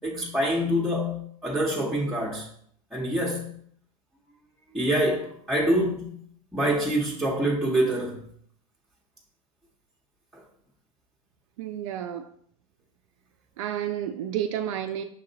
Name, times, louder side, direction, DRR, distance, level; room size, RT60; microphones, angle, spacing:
voice 1, 0.0-2.5 2.9-3.6 4.7-6.2 6.5-8.2 10.3-10.4, right 1 dB, 5° right, 0.9 m, -26 dB
voice 2, 11.6-12.3 13.6-15.0, right 10 dB, 65° right, 0.4 m, -30 dB
6.6 x 2.5 x 2.8 m
hypercardioid pair, 90°, 18 cm